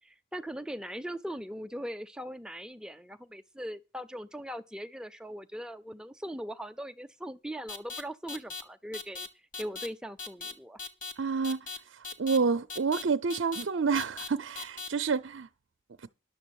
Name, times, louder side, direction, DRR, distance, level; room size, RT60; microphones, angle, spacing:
voice 1, 0.0-9.3 9.6-10.8, equal, 5° right, 0.5 m, -40 dB
sound 1, 7.7-8.0 8.3-8.6 8.9-9.3 9.5-9.9 10.2-10.5 10.8-11.1 11.4-11.8 12.0-12.4 12.7-13.0 13.3-13.6 14.0-14.3 14.6-14.9, left 4 dB, 40° left, 1.3 m, -38 dB
voice 2, 11.2-11.7 12.2-15.5, right 5 dB, 75° right, 0.5 m, -28 dB
11.0 x 7.0 x 7.0 m
head